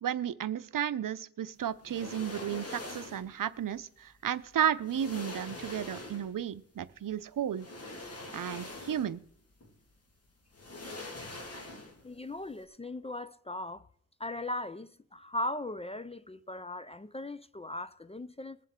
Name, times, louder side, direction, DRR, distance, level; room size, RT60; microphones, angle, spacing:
voice 1, 0.0-7.7 8.3-9.2, right 9 dB, 65° right, 0.6 m, -33 dB
sound 1, 1.8-3.3 4.4-4.5 4.8-6.4 7.5-9.3 9.6-9.7 10.5-12.1 12.4-12.6, left 2 dB, 45° left, 1.9 m, -44 dB
voice 2, 12.0-13.9 14.2-18.6, left 1 dB, 20° left, 0.4 m, -38 dB
21.0 x 7.5 x 3.7 m
wide cardioid pair, 90°, 35 cm